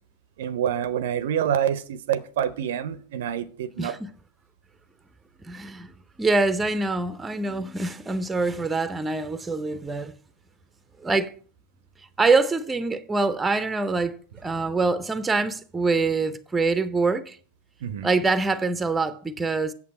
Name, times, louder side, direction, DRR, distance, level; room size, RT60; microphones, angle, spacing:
voice 1, 0.4-3.9 17.8-18.1, right 9 dB, 55° right, 0.5 m, -27 dB
voice 2, 3.8-4.1 5.4-5.9 6.2-10.1 11.0-11.3 12.2-17.4 18.0-19.7, right 3 dB, 10° right, 0.5 m, -25 dB
8.5 x 7.0 x 4.2 m
figure-of-eight pair, 90°, 0 cm